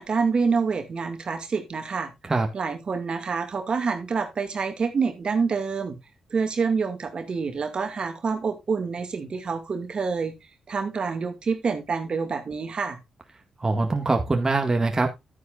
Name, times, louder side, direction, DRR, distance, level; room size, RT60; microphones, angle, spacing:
voice 1, 0.0-2.1 2.5-6.0 6.3-10.3 10.7-13.0, right 5 dB, 50° right, 6 dB, 2.3 m, -27 dB
voice 2, 13.6-15.1, right 3 dB, 30° right, 4 dB, 2.0 m, -23 dB
11.5 x 9.7 x 2.5 m, 0.22 s
hypercardioid pair, 45°, 2 cm